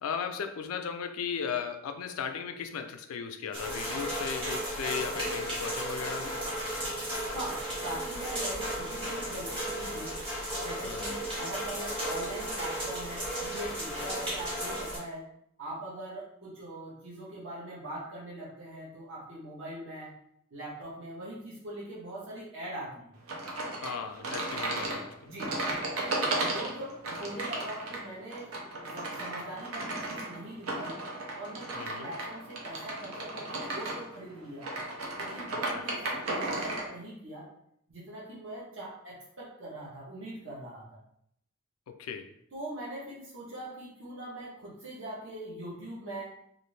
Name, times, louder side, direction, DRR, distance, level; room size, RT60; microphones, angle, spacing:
voice 1, 0.0-6.4 10.8-11.2 23.8-25.3 31.7-32.1 35.5-35.8 41.9-42.3, left 7 dB, 90° left, 7 dB, 0.4 m, -36 dB
sound 1, 3.5-15.0, equal, 25° right, 1.2 m, -34 dB
voice 2, 7.3-10.1 10.6-15.2 15.6-20.1 20.5-23.2 25.2-25.6 26.0-28.6 28.8-31.0 31.4-34.7 35.2-37.5 37.9-41.0 42.5-46.3, right 1 dB, 60° right, -6 dB, 0.9 m, -42 dB
sound 2, 23.3-36.9, right 2 dB, 85° right, 0.6 m, -35 dB
2.5 x 2.5 x 3.2 m, 0.73 s
head